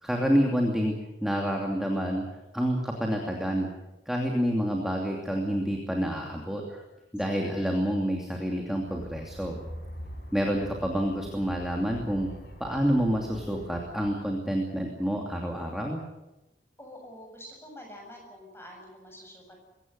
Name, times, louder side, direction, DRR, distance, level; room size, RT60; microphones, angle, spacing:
voice 1, 0.0-0.9 1.2-2.2 2.5-3.7 4.1-6.8 7.1-9.6 10.3-12.3 12.6-16.0, equal, ahead, 0 dB, 2.7 m, -28 dB
voice 2, 7.2-7.6 16.8-19.6, equal, 15° left, 1 dB, 7.8 m, -47 dB
sound 1, 8.9-14.0, equal, 70° left, 6.4 m, -44 dB
22.5 x 17.0 x 9.6 m, 0.97 s
head